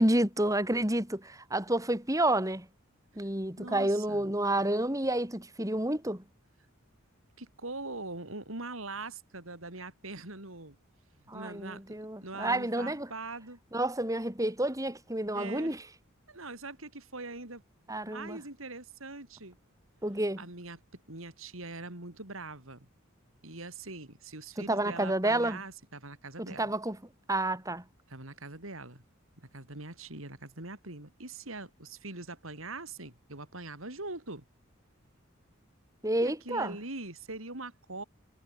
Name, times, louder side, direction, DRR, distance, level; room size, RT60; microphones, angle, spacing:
voice 1, 0.0-2.7 3.2-6.2 11.3-13.1 13.7-15.8 17.9-18.4 20.0-20.4 24.7-25.6 26.4-27.0 27.3-27.8 36.0-36.8, right 1 dB, 15° right, 4.0 m, -29 dB
voice 2, 3.6-4.3 7.4-10.8 11.3-11.8 12.2-13.6 15.3-15.7 16.3-17.6 18.1-19.6 20.4-20.8 21.1-22.9 23.4-26.7 28.1-29.0 29.4-34.4 36.2-38.0, right 2 dB, 75° right, 4.7 m, -42 dB
head